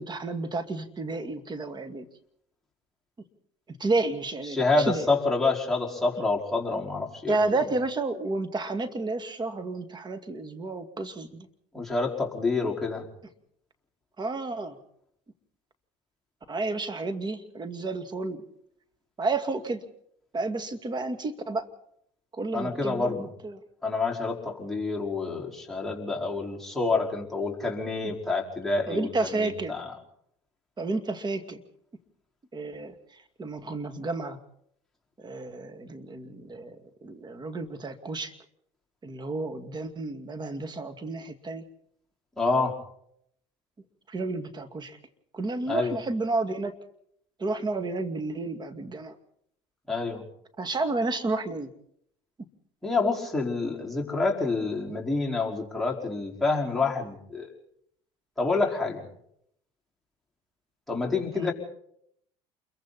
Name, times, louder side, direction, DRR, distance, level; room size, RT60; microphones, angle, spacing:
voice 1, 0.0-2.1 3.8-5.1 7.3-11.5 14.2-14.8 16.5-18.4 19.2-19.8 20.3-21.7 22.3-23.6 28.9-29.7 30.8-31.6 32.5-32.9 33.4-34.4 35.2-38.3 39.0-41.6 44.1-45.0 45.3-46.7 47.4-49.1 50.6-51.7 61.3-61.5, right 3 dB, 30° right, 8 dB, 2.4 m, -31 dB
voice 2, 4.5-7.4 11.7-13.1 22.5-23.3 23.8-29.9 42.4-42.8 45.7-46.0 49.9-50.2 52.8-57.5 58.4-59.0 60.9-61.5, left 3 dB, ahead, -3 dB, 5.0 m, -28 dB
28.5 x 22.5 x 4.3 m, 0.71 s
hypercardioid pair, 75°, 15 cm